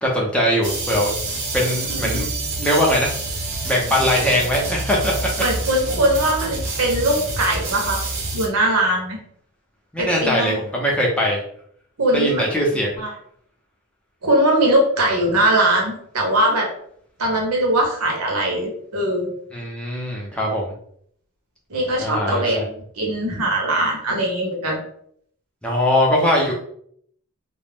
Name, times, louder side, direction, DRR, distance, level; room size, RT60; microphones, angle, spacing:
voice 1, 0.0-2.3 2.6-3.1 3.6-5.3 9.9-11.4 12.1-12.9 19.5-20.7 22.0-22.6 25.6-26.5, equal, 5° left, -3 dB, 0.5 m, -21 dB
sound 1, 0.6-8.5, right 3 dB, 60° right, 0.7 m, -27 dB
voice 2, 1.9-2.3 5.4-8.0 8.3-9.2 10.0-10.6 12.0-12.5 13.0-13.1 14.2-16.7 17.2-19.3 21.7-24.8, right 1 dB, 85° right, 0 dB, 0.9 m, -21 dB
2.4 x 2.0 x 3.4 m, 0.65 s
head